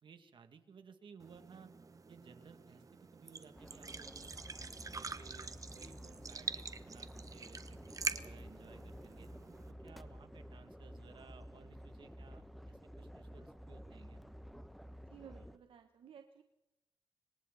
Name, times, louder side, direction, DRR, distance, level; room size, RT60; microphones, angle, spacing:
voice 1, 0.0-1.7 2.1-4.4 4.9-9.3 9.7-14.2, right 6 dB, 65° right, 7 dB, 2.4 m, -59 dB
sound 1, 1.2-9.7, right 4 dB, 40° right, 1.1 m, -45 dB
sound 2, 3.6-15.6, equal, ahead, 1.2 m, -52 dB
voice 2, 15.1-16.4, right 8 dB, 85° right, 6 dB, 1.2 m, -56 dB
26.0 x 24.0 x 4.2 m, 0.93 s
cardioid pair, 90°, 9 cm